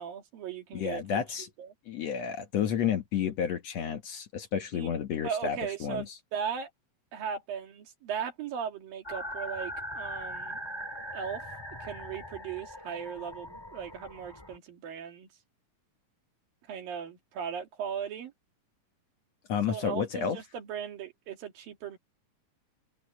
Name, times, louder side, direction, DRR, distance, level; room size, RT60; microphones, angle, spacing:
voice 1, 0.0-1.2 1.6-1.7 4.7-4.9 5.2-6.7 7.1-10.6 11.1-11.4 11.8-15.3 16.7-18.3 19.7-22.0, right 7 dB, 85° right, 4.2 m, -37 dB
voice 2, 0.7-1.5 1.9-6.1 19.5-20.4, left 7 dB, 60° left, 2.2 m, -31 dB
sound 1, 9.0-14.6, equal, 5° left, 6.8 m, -40 dB
open air
omnidirectional pair, 4.0 m